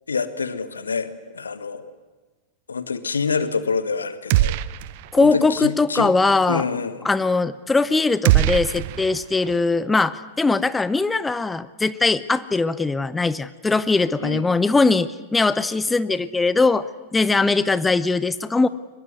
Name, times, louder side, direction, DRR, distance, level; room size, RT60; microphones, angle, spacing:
voice 1, 0.1-1.8 2.7-4.6 5.1-6.1 6.5-7.0 14.2-14.5, left 5 dB, 75° left, 12 dB, 1.5 m, -26 dB
sound 1, 4.3-5.2 5.5-5.6 8.2-9.5, right 15 dB, 50° right, 0.8 m, -21 dB
voice 2, 5.1-6.6 7.0-16.9 17.1-18.7, left 3 dB, 10° left, 15 dB, 0.7 m, -20 dB
23.5 x 22.0 x 9.4 m, 1.2 s
figure-of-eight pair, 90°, 0 cm